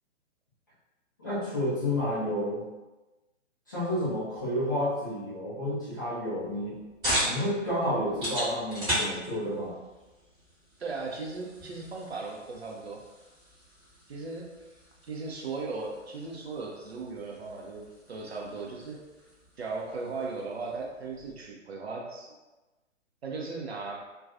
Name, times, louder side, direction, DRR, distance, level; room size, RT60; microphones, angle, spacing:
voice 1, 1.2-2.6 3.7-6.8 7.2-9.8, left 1 dB, 15° left, -12 dB, 0.4 m, -30 dB
sound 1, 6.4-21.5, equal, 10° right, 1.1 m, -38 dB
voice 2, 10.8-13.1 14.1-14.6 15.1-19.0 19.6-22.3 23.2-24.0, right 3 dB, 55° right, -1 dB, 0.6 m, -37 dB
2.5 x 2.2 x 2.4 m, 1.1 s
figure-of-eight pair, 130°, 38 cm